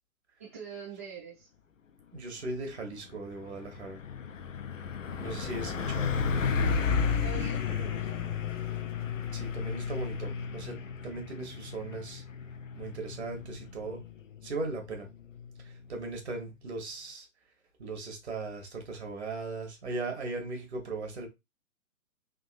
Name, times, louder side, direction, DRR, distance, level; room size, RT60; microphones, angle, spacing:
voice 1, 0.4-1.5 4.9-5.3 7.2-8.2, right 7 dB, 10° right, 0.5 m, -44 dB
voice 2, 2.1-4.0 5.2-6.2 9.3-12.2 12.8-14.0 14.4-15.1 15.6-17.3 17.8-21.3, right 3 dB, 50° right, 1.1 m, -38 dB
Truck, 2.6-2.8 3.2-15.7, left 6 dB, 60° left, 0.5 m, -33 dB
3.6 x 2.6 x 2.4 m
figure-of-eight pair, 130°, 43 cm